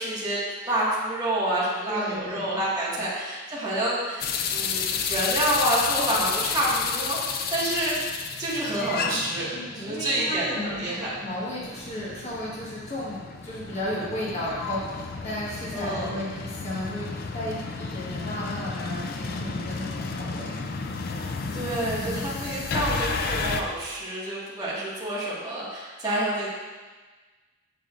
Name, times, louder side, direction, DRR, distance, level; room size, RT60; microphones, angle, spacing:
voice 1, 0.0-11.1 15.7-16.1 21.1-26.5, right 1 dB, 20° right, -9 dB, 1.7 m, -28 dB
voice 2, 1.9-2.6 2.9-3.0 9.5-20.5 22.0-22.6, left 1 dB, 35° left, -7 dB, 1.4 m, -34 dB
sound 1, 4.2-23.6, left 5 dB, 50° left, 0.4 m, -32 dB
7.0 x 6.9 x 2.5 m, 1.3 s
head